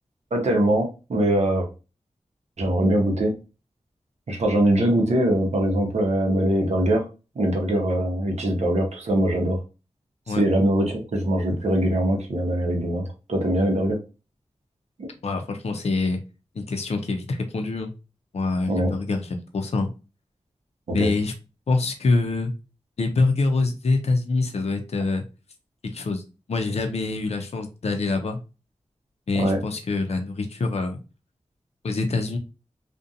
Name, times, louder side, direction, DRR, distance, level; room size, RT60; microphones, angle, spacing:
voice 1, 0.3-1.7 2.6-3.3 4.3-7.0 7.4-9.6 10.3-13.0 13.3-14.0 18.7-18.9 20.9-21.1 29.3-29.6, right 1 dB, 75° right, 1 dB, 0.7 m, -22 dB
voice 2, 15.2-16.2 16.6-17.9 18.3-19.9 20.9-21.3 21.7-22.5 23.0-25.2 25.9-26.2 26.5-28.4 29.3-31.0 31.8-32.4, left 3 dB, 65° left, 5 dB, 0.5 m, -25 dB
2.5 x 2.1 x 2.6 m, 0.30 s
wide cardioid pair, 60°, 12 cm